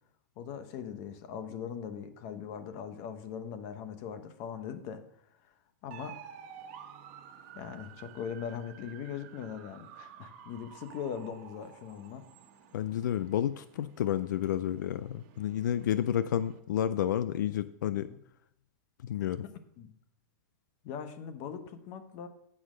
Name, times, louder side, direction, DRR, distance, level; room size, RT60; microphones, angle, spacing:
voice 1, 0.4-5.0 5.3-5.5 5.8-6.2 7.5-12.3 18.1-18.2 19.4-19.9 20.8-22.3, left 8 dB, 45° left, 9 dB, 1.0 m, -40 dB
sound 1, 5.9-16.6, right 8 dB, 45° right, 1.1 m, -52 dB
voice 2, 12.7-18.1 19.0-19.4, left 10 dB, 85° left, 14 dB, 0.4 m, -30 dB
8.7 x 5.0 x 6.3 m, 0.73 s
supercardioid pair, 145°, 10 cm